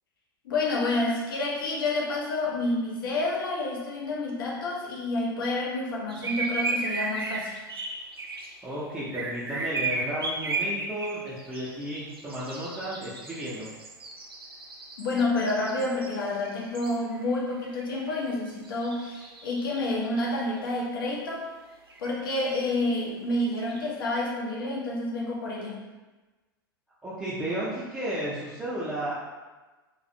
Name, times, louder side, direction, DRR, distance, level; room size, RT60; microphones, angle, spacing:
voice 1, 0.4-7.6 15.0-21.5 22.0-25.8, left 2 dB, 60° left, -2 dB, 0.6 m, -29 dB
sound 1, 6.1-8.5 9.1-17.3 17.6-18.2 18.5-20.2 21.9-22.1 23.4-23.8, right 3 dB, 75° right, 0.4 m, -34 dB
voice 2, 8.6-13.7 27.0-29.1, right 1 dB, 10° right, -10 dB, 0.5 m, -33 dB
2.4 x 2.1 x 2.6 m, 1.2 s
figure-of-eight pair, 90°, 13 cm